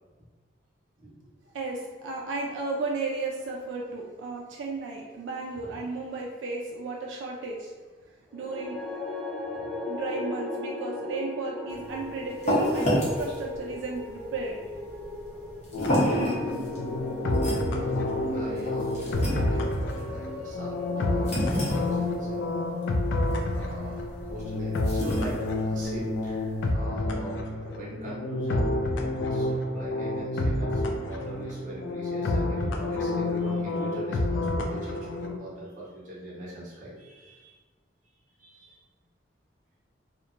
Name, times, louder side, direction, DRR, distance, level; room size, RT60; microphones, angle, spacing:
voice 1, 1.0-1.3 9.5-9.8 15.3-16.7 17.8-22.6 23.5-28.8 29.3-37.6 38.4-38.8, right 1 dB, 40° right, -6 dB, 0.7 m, -41 dB
voice 2, 1.5-7.7 8.3-8.8 9.9-14.7, right 3 dB, 80° right, -1 dB, 0.3 m, -34 dB
sound 1, 8.3-24.6, left 2 dB, 5° left, 0.3 m, -38 dB
sound 2, 11.7-26.7, equal, 35° left, 0.7 m, -32 dB
sound 3, 15.7-35.4, left 2 dB, 80° left, 0.3 m, -29 dB
2.8 x 2.1 x 2.4 m, 1.4 s
head